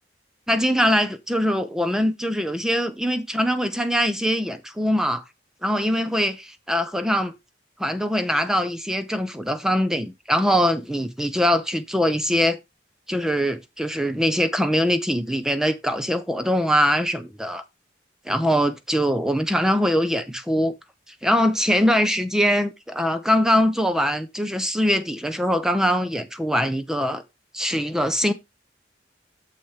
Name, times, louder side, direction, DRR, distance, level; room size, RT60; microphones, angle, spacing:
voice 1, 0.5-5.2 5.6-7.3 7.8-12.6 13.1-17.6 18.3-20.7 21.2-27.2 27.5-28.3, equal, 5° right, 0.7 m, -22 dB
7.3 x 5.3 x 4.5 m
head